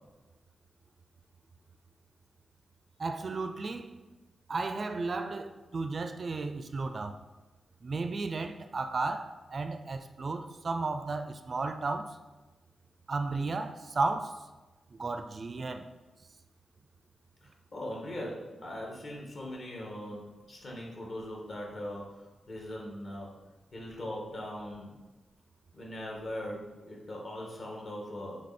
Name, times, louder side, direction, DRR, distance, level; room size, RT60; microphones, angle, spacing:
voice 1, 3.0-3.9 4.5-7.2 7.8-12.2 13.1-14.4 14.9-15.9, right 3 dB, 45° right, 0.4 m, -34 dB
voice 2, 17.4-20.2 20.5-23.3 23.7-24.9 25.7-28.4, left 1 dB, 50° left, 1.9 m, -40 dB
8.5 x 3.3 x 4.3 m
wide cardioid pair, 100°, 0 cm